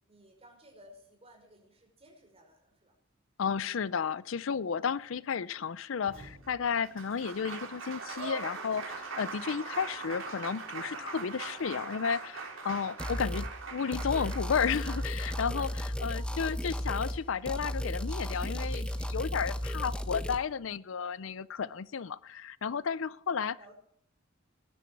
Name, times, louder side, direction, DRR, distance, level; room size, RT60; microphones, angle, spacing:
voice 1, 0.1-3.0 4.6-4.7 9.6-9.9 16.1-16.9 23.6-23.7, right 1 dB, 30° right, 2 dB, 5.3 m, -57 dB
voice 2, 3.4-23.6, left 6 dB, 70° left, 19 dB, 0.5 m, -33 dB
Applause, 6.0-16.3 17.7-17.8 18.1-19.1, right 4 dB, 75° right, 4.1 m, -42 dB
sound 1, 13.0-13.5 13.9-17.2 17.5-20.4, equal, 5° left, 0.9 m, -34 dB
20.5 x 11.0 x 4.6 m, 0.69 s
head